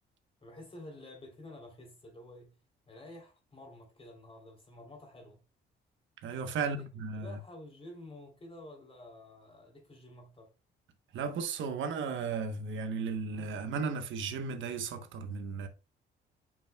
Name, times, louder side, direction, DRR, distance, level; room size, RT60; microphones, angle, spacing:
voice 1, 0.4-2.5 2.9-5.4 6.6-6.8 7.1-10.5, left 1 dB, 30° left, 3.3 m, -50 dB
voice 2, 6.2-7.4 11.1-15.7, right 5 dB, 75° right, 1.1 m, -35 dB
8.6 x 6.2 x 2.3 m
cardioid pair, 90°, 20 cm